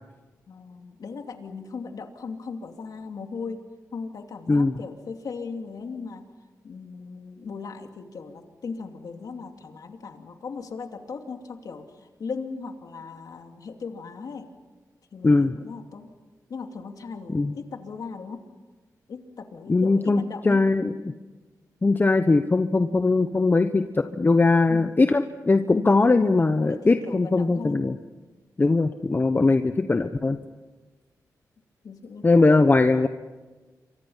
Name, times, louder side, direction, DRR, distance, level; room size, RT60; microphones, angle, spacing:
voice 1, 0.5-3.6 3.9-6.2 6.6-14.5 15.1-16.1 16.5-18.4 19.1-20.6 24.7-24.9 25.7-25.9 26.2-27.8 31.8-32.6, left 5 dB, 70° left, 4 dB, 2.7 m, -38 dB
voice 2, 15.2-15.5 17.3-17.5 19.7-20.9 21.8-27.9 28.6-30.4 32.2-33.1, left 3 dB, 30° left, 8 dB, 1.0 m, -20 dB
28.0 x 25.0 x 5.7 m, 1.3 s
cardioid pair, 80°, 7 cm